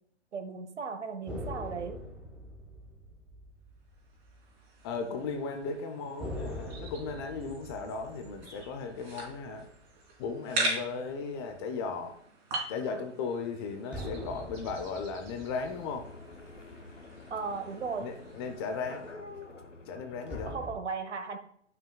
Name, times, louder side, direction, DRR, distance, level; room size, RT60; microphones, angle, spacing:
voice 1, 0.3-2.0 17.3-18.1 20.5-21.4, right 5 dB, 70° right, 8 dB, 1.3 m, -36 dB
sound 1, 1.3-5.0 5.2-5.4 6.2-10.8 13.9-17.5 20.3-20.8, equal, 5° right, 0.9 m, -44 dB
sound 2, 4.0-19.1, right 2 dB, 40° right, 3.3 m, -42 dB
voice 2, 4.8-9.7 10.2-12.1 12.7-16.1 18.0-19.1 19.9-20.6, left 4 dB, 20° left, 6 dB, 0.6 m, -36 dB
sound 3, 15.7-20.7, left 3 dB, 90° left, 1.2 m, -48 dB
12.5 x 5.9 x 2.3 m, 0.70 s
figure-of-eight pair, 130°, 36 cm